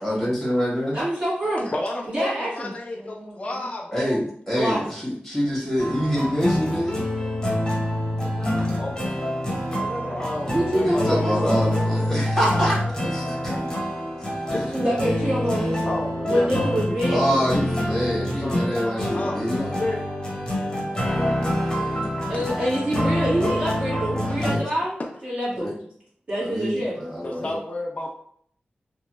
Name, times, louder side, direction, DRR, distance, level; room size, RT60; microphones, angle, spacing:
voice 1, 0.0-1.0 3.9-7.0 10.8-13.5 14.5-14.6 17.1-19.7 24.4-24.6 25.6-25.7 26.4-27.5, equal, 5° right, -6 dB, 1.3 m, -25 dB
voice 2, 0.9-1.7 2.1-3.6 4.5-4.8 8.2-8.8 9.7-10.2 10.5-11.6 12.9-13.6 14.6-16.0 16.2-17.5 21.1-25.8 26.3-26.9, equal, 35° right, -9 dB, 1.3 m, -27 dB
voice 3, 1.7-4.2 8.8-9.0 10.0-11.2 11.4-11.7 14.5-14.6 15.9-17.5 18.4-18.8 19.1-20.0 22.3-22.7 24.0-25.1 27.2-28.1, left 2 dB, 35° left, 0 dB, 0.4 m, -32 dB
sound 1, 5.8-24.6, left 1 dB, 20° left, 0.9 m, -26 dB
3.0 x 2.2 x 3.0 m, 0.62 s
wide cardioid pair, 100°, 4 cm